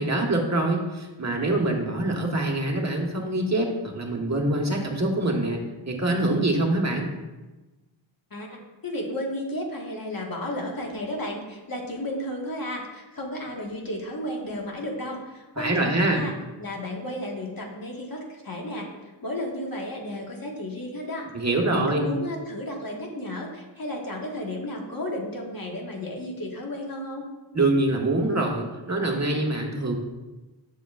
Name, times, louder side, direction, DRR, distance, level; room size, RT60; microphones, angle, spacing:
voice 1, 0.0-7.1 15.6-16.2 21.3-22.1 27.5-30.0, right 2 dB, 35° right, 0 dB, 1.4 m, -25 dB
voice 2, 8.3-16.3 16.6-18.9 19.2-21.3 21.7-27.3, left 1 dB, 45° left, -1 dB, 1.6 m, -33 dB
7.2 x 6.9 x 2.4 m, 1.1 s
cardioid pair, 40°, 47 cm